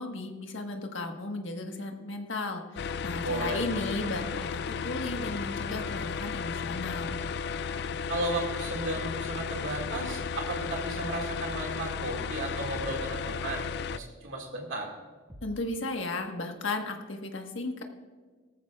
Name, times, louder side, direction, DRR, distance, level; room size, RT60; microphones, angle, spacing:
voice 1, 0.0-7.2 15.4-17.8, left 2 dB, 75° left, 3 dB, 1.4 m, -35 dB
sound 1, 2.8-14.0, left 6 dB, 55° left, 0.3 m, -34 dB
Trumpet, 3.2-8.1, left 3 dB, 90° left, 3.0 m, -49 dB
voice 2, 3.2-3.9 8.1-13.7 13.9-14.9, right 2 dB, 80° right, 0 dB, 2.1 m, -34 dB
sound 2, 7.1-7.5 9.8-10.2 12.7-13.1 15.3-15.7, equal, 20° right, 1.7 m, -46 dB
18.0 x 14.0 x 2.4 m, 1.4 s
head